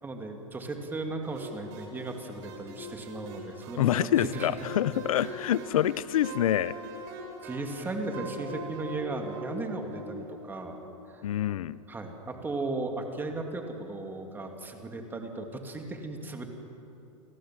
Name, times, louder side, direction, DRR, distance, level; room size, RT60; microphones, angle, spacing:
voice 1, 0.0-4.5 7.4-10.8 11.1-11.2 11.9-16.5, right 2 dB, 10° right, 3 dB, 2.5 m, -36 dB
sound 1, 1.2-11.8, right 1 dB, 50° right, 6.4 m, -42 dB
voice 2, 3.8-6.7 11.2-11.8, left 11 dB, 85° left, 19 dB, 0.6 m, -26 dB
29.5 x 17.5 x 7.6 m, 3.0 s
supercardioid pair, 140°, 17 cm